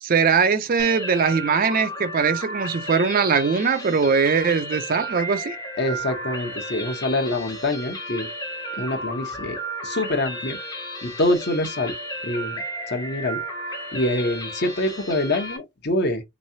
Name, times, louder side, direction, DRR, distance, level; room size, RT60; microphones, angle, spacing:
voice 1, 0.0-5.6, right 5 dB, 40° right, 0.4 m, -21 dB
sound 1, 0.8-15.6, right 1 dB, 15° left, 0.7 m, -33 dB
voice 2, 5.8-8.3 8.8-9.6 9.8-10.6 11.0-11.9 12.2-12.6 12.9-13.4 13.9-16.2, left 1 dB, 50° left, 0.9 m, -25 dB
3.6 x 3.1 x 2.7 m
head